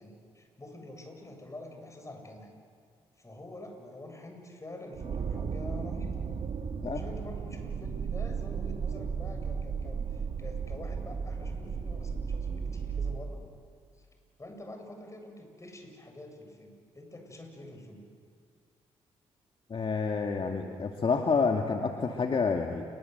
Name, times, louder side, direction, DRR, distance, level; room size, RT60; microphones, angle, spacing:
voice 1, 0.0-2.5 3.2-6.2 6.8-13.4 14.0-14.1 14.4-18.0, left 1 dB, 25° left, 4 dB, 7.6 m, -46 dB
sound 1, 4.9-13.2, right 6 dB, 60° right, 2.5 m, -34 dB
voice 2, 19.7-22.8, left 5 dB, 45° left, 3 dB, 2.1 m, -28 dB
28.5 x 23.0 x 8.0 m, 2.1 s
supercardioid pair, 50°, 12 cm